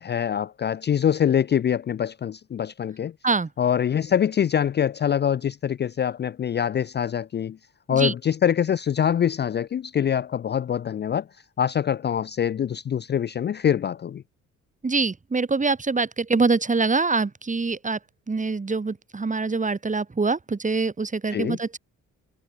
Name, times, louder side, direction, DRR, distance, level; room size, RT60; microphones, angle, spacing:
voice 1, 0.0-3.1 3.6-7.6 7.9-11.2 11.6-14.2 21.3-21.6, left 9 dB, 35° left, 0.5 m, -24 dB
voice 2, 14.8-18.0 18.3-21.8, right 4 dB, 25° right, 3.9 m, -24 dB
cardioid pair, 90°, 30 cm